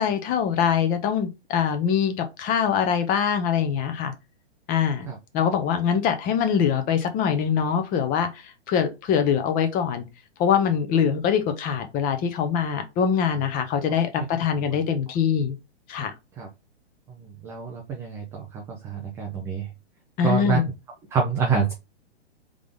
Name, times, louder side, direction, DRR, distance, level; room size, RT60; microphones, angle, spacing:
voice 1, 0.0-4.1 4.7-5.1 5.3-10.1 10.4-15.5 15.9-16.1 20.2-20.6, left 7 dB, 25° left, 0.8 m, -23 dB
voice 2, 17.4-18.2 18.5-19.7 20.2-20.6 21.1-21.7, right 5 dB, 10° right, 0.3 m, -26 dB
3.7 x 3.4 x 3.5 m
hypercardioid pair, 125°, 33 cm